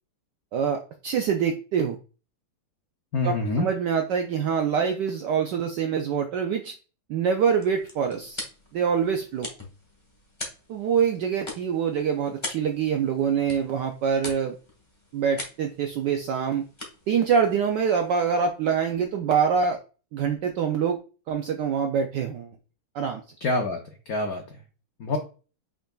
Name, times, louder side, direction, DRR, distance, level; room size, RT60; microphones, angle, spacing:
voice 1, 0.5-2.0 3.2-6.7 7.1-8.4 8.7-9.5 10.7-14.6 15.1-16.6 17.1-19.8 20.1-21.0 21.3-22.5 22.9-23.2, right 7 dB, 80° right, 4 dB, 0.9 m, -25 dB
voice 2, 3.1-3.7 23.4-24.6 25.0-25.2, left 2 dB, 75° left, 3 dB, 0.8 m, -26 dB
sound 1, 7.3-18.5, left 2 dB, 20° left, 0.8 m, -42 dB
5.9 x 3.9 x 2.3 m, 0.35 s
omnidirectional pair, 2.4 m